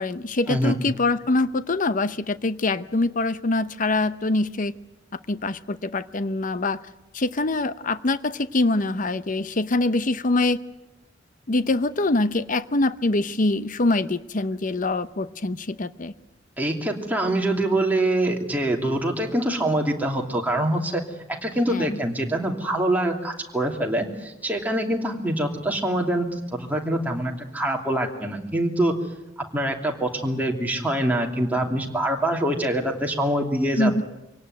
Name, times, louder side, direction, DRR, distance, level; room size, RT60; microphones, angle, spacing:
voice 1, 0.0-4.7 5.3-6.8 7.1-10.6 11.5-16.1 21.7-22.0 33.8-34.0, left 2 dB, 45° left, 13 dB, 0.8 m, -24 dB
voice 2, 16.6-21.0 21.4-28.9 29.5-33.9, right 1 dB, 10° right, 1 dB, 2.8 m, -24 dB
24.5 x 18.0 x 9.4 m, 0.97 s
head